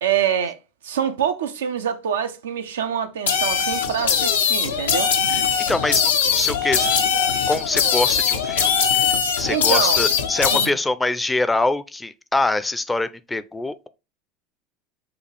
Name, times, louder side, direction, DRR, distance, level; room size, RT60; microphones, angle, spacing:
voice 1, 0.0-0.6 0.8-5.1 9.5-10.0 10.5-10.7, right 8 dB, 80° right, 0.5 m, -25 dB
sound 1, 3.3-10.7, left 7 dB, 80° left, 0.6 m, -21 dB
voice 2, 5.7-6.0 6.3-6.9 7.5-9.1 9.4-13.9, left 2 dB, 10° left, 0.5 m, -24 dB
6.8 x 2.3 x 3.3 m
hypercardioid pair, 80°, 0 cm